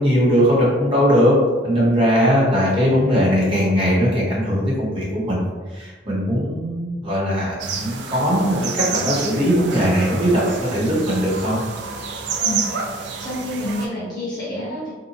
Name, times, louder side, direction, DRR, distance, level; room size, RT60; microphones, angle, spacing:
voice 1, 0.0-1.3 1.6-5.4 5.7-11.6, equal, 30° right, -7 dB, 0.9 m, -19 dB
sound 1, 7.6-13.9, right 5 dB, 80° right, 0.3 m, -29 dB
voice 2, 12.4-12.7 13.2-14.9, left 1 dB, 25° left, -11 dB, 1.1 m, -28 dB
2.7 x 2.1 x 2.7 m, 1.3 s
head